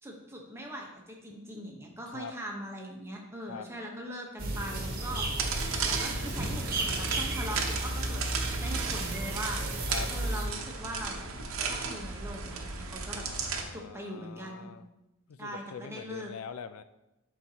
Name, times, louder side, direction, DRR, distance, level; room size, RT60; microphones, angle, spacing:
voice 1, 0.0-5.3 5.9-8.2 8.5-9.6 10.1-11.2 11.6-13.2 13.7-14.7 15.4-16.3, equal, 10° right, 0 dB, 1.0 m, -41 dB
sound 1, 4.4-10.5, right 1 dB, 45° right, 1.1 m, -33 dB
sound 2, 5.4-13.6, right 4 dB, 75° right, 0.9 m, -35 dB
voice 2, 13.1-14.8 15.3-16.8, left 6 dB, 85° left, 12 dB, 0.4 m, -43 dB
11.5 x 4.0 x 2.9 m, 0.96 s
head